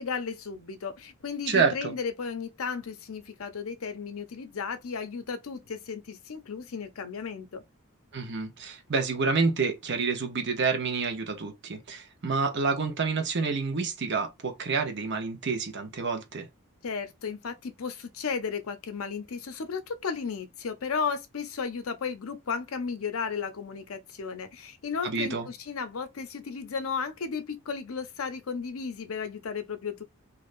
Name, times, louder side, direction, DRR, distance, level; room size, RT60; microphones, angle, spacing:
voice 1, 0.0-7.6 16.8-30.0, left 5 dB, 75° left, 0.6 m, -34 dB
voice 2, 1.5-1.9 8.1-16.5 25.0-25.4, right 4 dB, 55° right, 0.8 m, -28 dB
3.2 x 2.6 x 2.5 m
head